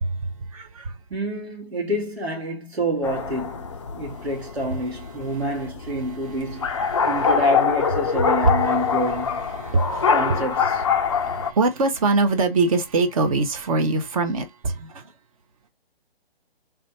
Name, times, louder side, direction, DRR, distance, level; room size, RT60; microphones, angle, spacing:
voice 1, 0.0-0.9 4.6-4.8 5.2-7.3 8.1-9.1 9.4-15.1, right 3 dB, 35° right, 0.8 m, -25 dB
voice 2, 1.1-6.7 7.1-9.5 10.1-10.8, equal, 85° right, 1.8 m, -27 dB
sound 1, 3.0-11.5, left 6 dB, 30° left, 0.4 m, -24 dB
3.4 x 2.5 x 4.1 m
hypercardioid pair, 150°, 31 cm